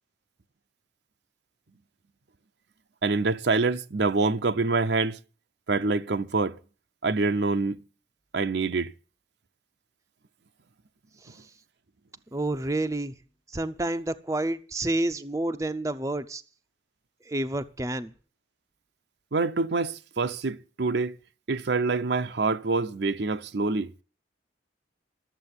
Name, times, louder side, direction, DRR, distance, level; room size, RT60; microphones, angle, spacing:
voice 1, 3.0-5.2 5.7-6.5 7.0-7.8 8.3-8.9 19.3-21.1 21.5-23.9, right 3 dB, 60° right, 0.6 m, -26 dB
voice 2, 12.3-13.1 13.5-16.4 17.3-18.1, right 2 dB, 15° right, 0.6 m, -29 dB
13.0 x 7.5 x 9.6 m
head